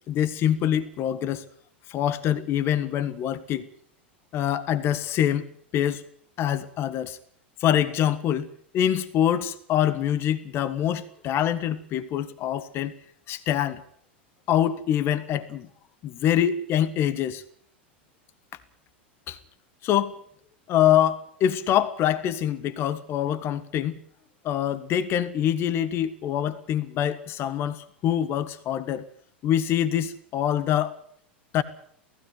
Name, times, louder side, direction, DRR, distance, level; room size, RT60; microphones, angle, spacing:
voice 1, 0.1-1.4 1.9-3.7 4.3-5.5 5.7-6.0 6.4-7.2 7.6-8.5 8.7-12.9 13.3-13.8 14.5-15.7 16.0-17.4 19.3-19.4 19.8-20.2 20.7-24.0 24.4-29.0 29.4-31.0 31.5-31.6, left 10 dB, 40° left, 14 dB, 1.5 m, -25 dB
17.5 x 16.0 x 9.5 m, 0.63 s
hypercardioid pair, 90°, 6 cm